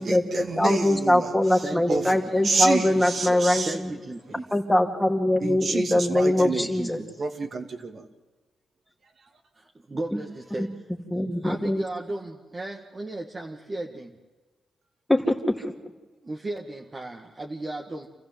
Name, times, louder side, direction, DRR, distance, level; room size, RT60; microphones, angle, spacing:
voice 1, 0.0-2.1 2.4-3.8 5.4-6.7 7.2-8.0 9.2-9.3, right 4 dB, 55° right, 2.4 m, -29 dB
voice 2, 0.6-3.9 4.5-7.0 10.1-10.2 10.6-10.7 11.1-11.8 15.1-15.7, left 1 dB, 5° left, 2.4 m, -22 dB
voice 3, 1.6-2.2 3.7-4.5 6.4-7.2 9.6-10.7 11.4-14.2 16.2-18.1, right 2 dB, 35° right, 1.7 m, -35 dB
27.5 x 14.5 x 7.7 m
cardioid pair, 70°, 0 cm